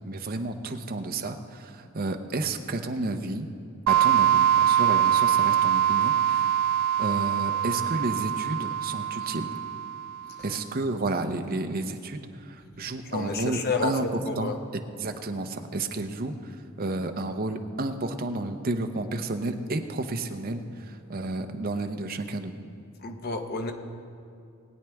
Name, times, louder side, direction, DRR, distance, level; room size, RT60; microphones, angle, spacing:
voice 1, 0.0-3.5 3.9-6.5 7.0-9.5 10.4-14.1 14.4-14.5 15.0-22.6, right 2 dB, 40° right, 6 dB, 0.7 m, -31 dB
sound 1, 3.9-10.4, right 10 dB, 70° right, 0.3 m, -23 dB
voice 2, 13.1-14.6 23.0-23.7, left 3 dB, 45° left, 5 dB, 0.8 m, -30 dB
20.0 x 8.9 x 3.5 m, 2.4 s
head